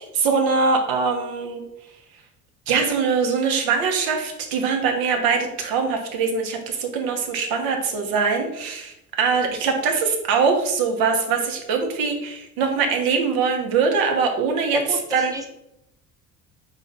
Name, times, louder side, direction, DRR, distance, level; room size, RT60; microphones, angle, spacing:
voice 1, 0.0-1.6 2.7-14.8 15.1-15.5, right 5 dB, 60° right, 3 dB, 1.0 m, -22 dB
voice 2, 14.7-15.5, equal, 10° right, 4 dB, 0.8 m, -31 dB
3.9 x 3.1 x 4.0 m, 0.84 s
hypercardioid pair, 60°, 40 cm